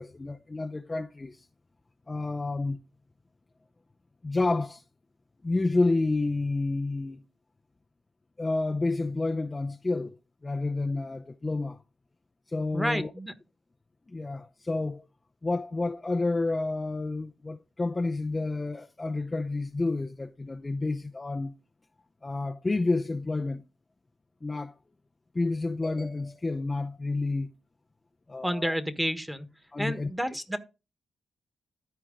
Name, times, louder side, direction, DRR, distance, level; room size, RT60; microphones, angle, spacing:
voice 1, 0.0-1.5 2.1-2.8 4.2-4.8 5.4-7.2 8.4-10.2 10.4-11.8 12.5-13.1 14.1-15.0 15.4-21.5 22.2-23.7 24.4-24.7 25.3-27.5 28.3-28.8 29.7-30.1, left 3 dB, 25° left, 0.6 m, -29 dB
voice 2, 12.7-13.3 28.4-29.5 29.8-30.6, equal, 5° right, 1.4 m, -30 dB
13.5 x 4.6 x 3.8 m
supercardioid pair, 60°, 0 cm